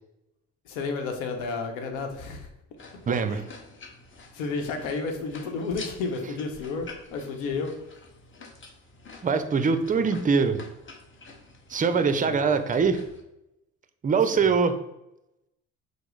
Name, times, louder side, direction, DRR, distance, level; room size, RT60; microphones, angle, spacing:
voice 1, 0.7-2.5 3.3-3.4 4.3-7.7 9.9-10.1 11.9-12.5 14.3-14.5, left 4 dB, 80° left, 4 dB, 0.8 m, -32 dB
sound 1, 2.8-13.2, left 3 dB, 30° left, 0.9 m, -48 dB
voice 2, 3.1-3.4 9.2-10.6 11.7-13.0 14.0-14.8, right 5 dB, 20° right, 10 dB, 0.4 m, -23 dB
4.8 x 2.0 x 3.7 m, 0.89 s
hypercardioid pair, 60°, 37 cm